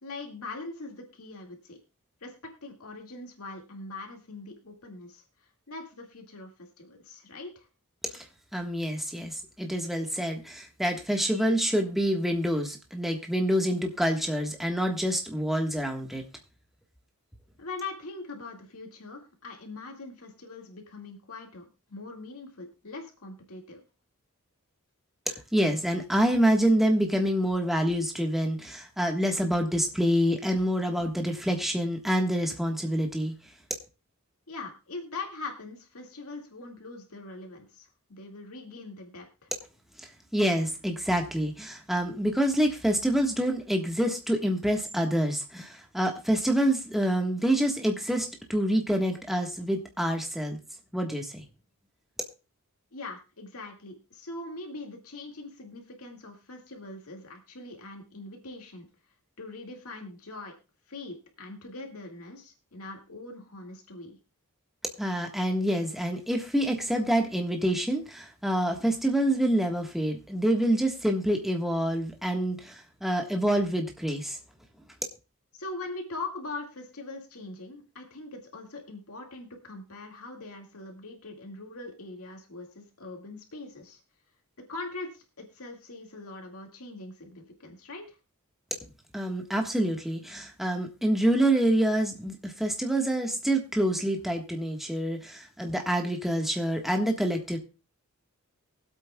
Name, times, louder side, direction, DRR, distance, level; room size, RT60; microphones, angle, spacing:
voice 1, 0.0-1.8 2.2-2.3 2.6-5.2 5.7-7.7 17.6-23.8 34.5-39.5 52.9-58.9 59.4-60.5 60.9-64.2 75.5-84.0 84.7-88.2, left 3 dB, 70° left, 2 dB, 2.0 m, -42 dB
voice 2, 8.5-16.2 25.3-33.3 40.0-50.6 50.9-51.4 65.0-74.4 89.1-97.6, right 1 dB, ahead, 2 dB, 1.4 m, -27 dB
23.0 x 8.2 x 2.3 m, 0.31 s
head